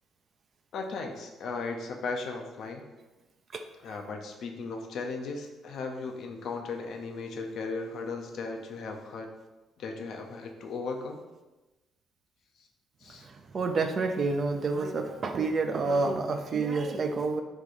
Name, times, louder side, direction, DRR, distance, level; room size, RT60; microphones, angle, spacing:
voice 1, 0.7-2.9 3.8-9.3 9.8-11.2 13.0-13.3, left 4 dB, 70° left, 4 dB, 0.4 m, -36 dB
voice 2, 13.2-17.4, right 3 dB, 50° right, 5 dB, 0.4 m, -29 dB
2.9 x 2.3 x 4.1 m, 1.1 s
hypercardioid pair, 55°, 0 cm